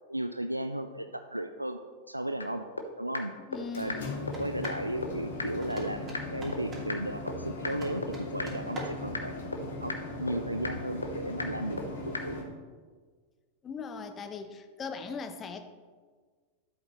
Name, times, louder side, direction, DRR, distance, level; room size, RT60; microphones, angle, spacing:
voice 1, 0.1-1.8 2.1-2.6 3.0-3.3 3.8-4.0 4.4-9.3 9.8-9.9 10.2-11.8 12.0-12.4, right 1 dB, 85° right, 9 dB, 0.4 m, -35 dB
sound 1, 2.4-2.5 2.8-2.9 3.1-3.2 3.5-3.6 3.9-4.0 4.3-4.4 4.6-4.7 5.0-5.1 5.4-5.5 5.8-5.9 6.1-6.2 6.5-6.6 6.9-7.0 7.3-7.4 7.6-7.7 8.0-8.1 8.4-8.5 8.8-8.9 9.1-9.2 9.5-9.6 9.9-10.0 10.3-10.4 10.6-10.7 11.0-11.1 11.4-11.5 11.8-11.9 12.1-12.2, left 3 dB, 80° left, 0.8 m, -33 dB
voice 2, 3.4-4.2 13.6-15.7, left 5 dB, 25° left, 8 dB, 0.8 m, -39 dB
sound 2, 3.5-12.4, left 2 dB, 60° left, 1.8 m, -39 dB
sound 3, 4.3-4.9 5.6-7.0 7.6-9.1, equal, 25° right, 2.7 m, -43 dB
13.0 x 8.0 x 3.1 m, 1.5 s
figure-of-eight pair, 90°, 0 cm